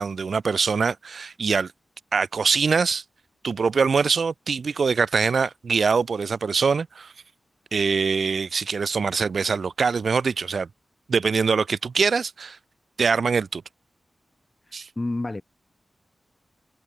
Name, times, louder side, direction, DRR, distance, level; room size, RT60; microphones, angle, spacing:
voice 1, 0.0-1.7 2.1-3.0 3.4-7.1 7.7-10.7 11.1-12.6 13.0-13.6 14.7-14.9, right 5 dB, 60° right, 4.1 m, -23 dB
voice 2, 14.7-15.4, left 2 dB, 20° left, 5.5 m, -30 dB
wide cardioid pair, 150°, 0 cm